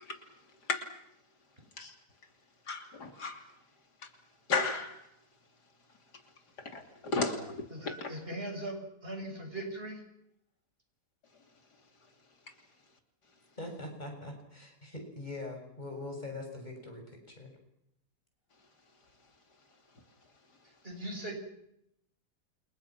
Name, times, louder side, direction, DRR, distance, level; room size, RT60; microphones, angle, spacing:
voice 1, 2.7-3.4 4.5-4.9 6.7-7.4 7.8-8.1, left 3 dB, 85° left, 5 dB, 3.5 m, -33 dB
voice 2, 7.7-10.0 20.8-21.3, right 1 dB, 35° right, 3 dB, 6.8 m, -39 dB
voice 3, 13.6-17.5, left 2 dB, 25° left, 3 dB, 7.0 m, -42 dB
29.5 x 28.5 x 6.1 m, 0.78 s
omnidirectional pair, 1.7 m